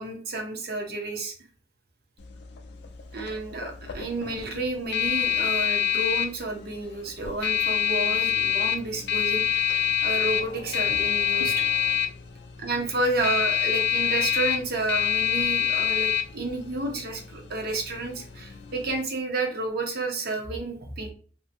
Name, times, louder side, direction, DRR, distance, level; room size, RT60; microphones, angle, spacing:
voice 1, 0.0-1.3 3.1-11.7 12.6-21.1, right 2 dB, 55° right, 2 dB, 0.7 m, -31 dB
sound 1, 2.2-19.0, left 10 dB, 65° left, 0.4 m, -27 dB
2.7 x 2.5 x 2.5 m, 0.41 s
head